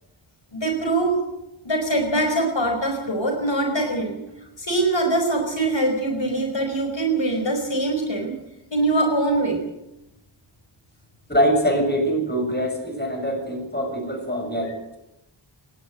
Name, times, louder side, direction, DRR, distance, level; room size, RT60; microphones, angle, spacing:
voice 1, 0.5-1.1 1.6-4.2 4.6-8.3 8.7-9.6, right 2 dB, 60° left, 3 dB, 4.9 m, -23 dB
voice 2, 11.3-15.0, equal, 20° left, 4 dB, 7.1 m, -23 dB
27.5 x 11.5 x 9.2 m, 0.88 s
wide cardioid pair, 50°, 49 cm